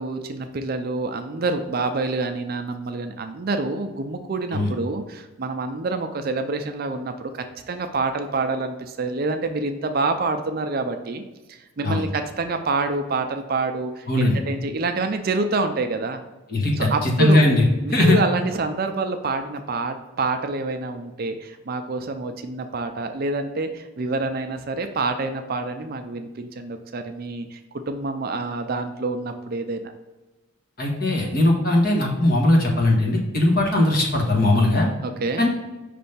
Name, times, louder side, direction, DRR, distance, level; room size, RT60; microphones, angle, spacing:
voice 1, 0.0-11.2 11.5-16.2 16.8-17.4 17.8-29.9 35.0-35.5, right 3 dB, 45° right, 7 dB, 0.4 m, -27 dB
voice 2, 14.1-14.4 16.5-16.7 17.0-17.6 17.9-18.2 30.8-34.9 35.4-35.5, left 1 dB, 45° left, -1 dB, 1.3 m, -19 dB
5.2 x 3.4 x 5.5 m, 1.1 s
head